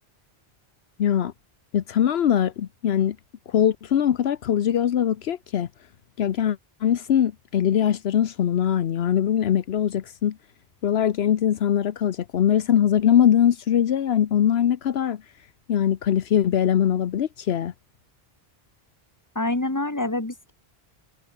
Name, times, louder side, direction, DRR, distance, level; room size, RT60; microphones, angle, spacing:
voice 1, 1.0-1.3 1.7-3.2 3.5-5.7 6.2-10.4 10.8-15.2 15.7-17.7, left 9 dB, 80° left, 1.0 m, -22 dB
voice 2, 19.4-20.5, left 2 dB, 15° left, 2.0 m, -26 dB
omnidirectional pair, 1.0 m